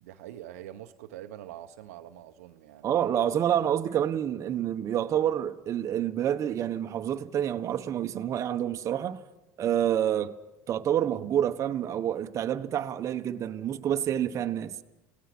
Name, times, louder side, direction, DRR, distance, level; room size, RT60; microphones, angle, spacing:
voice 1, 0.0-3.1, right 12 dB, 85° right, 1.1 m, -45 dB
voice 2, 2.8-9.2 9.6-10.3 10.7-14.8, right 10 dB, 40° right, 1.3 m, -28 dB
29.0 x 18.0 x 6.2 m
supercardioid pair, 100°, 8 cm